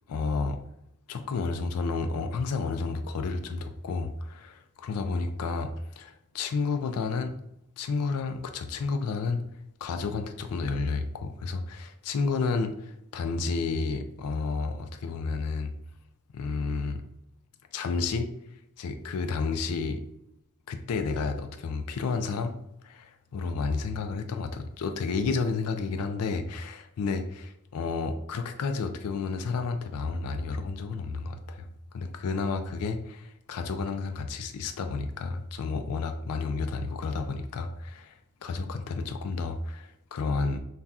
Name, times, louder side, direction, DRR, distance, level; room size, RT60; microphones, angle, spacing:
voice 1, 0.1-0.6 1.1-7.3 7.8-9.4 9.8-15.7 16.3-17.0 17.7-18.3 18.8-20.0 20.7-22.5 22.8-31.7 31.9-40.6, left 4 dB, 80° left, 7 dB, 0.4 m, -31 dB
5.4 x 2.3 x 2.3 m, 0.80 s
head